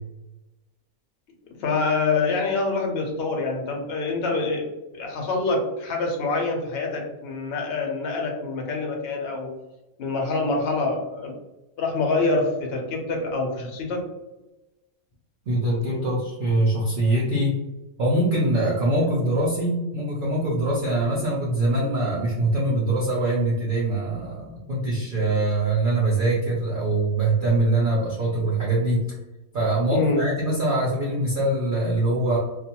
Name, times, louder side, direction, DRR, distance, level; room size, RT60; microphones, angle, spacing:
voice 1, 1.6-4.7 4.9-9.5 10.0-11.3 11.8-14.0 29.9-30.2, left 3 dB, 60° left, 1 dB, 0.7 m, -25 dB
voice 2, 15.5-17.6 18.0-29.0 29.5-32.4, right 2 dB, 65° right, -5 dB, 0.5 m, -23 dB
2.4 x 2.2 x 2.8 m, 1.0 s
omnidirectional pair, 1.5 m